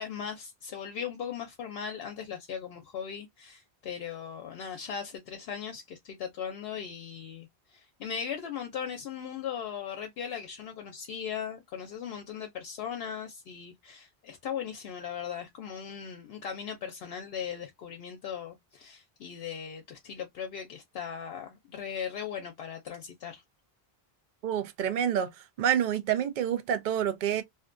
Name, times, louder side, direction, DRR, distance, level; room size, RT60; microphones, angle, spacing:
voice 1, 0.0-23.4, left 8 dB, 75° left, 0.8 m, -38 dB
voice 2, 24.4-25.3 25.6-27.4, right 9 dB, 60° right, 0.6 m, -27 dB
2.6 x 2.2 x 2.4 m
omnidirectional pair, 1.0 m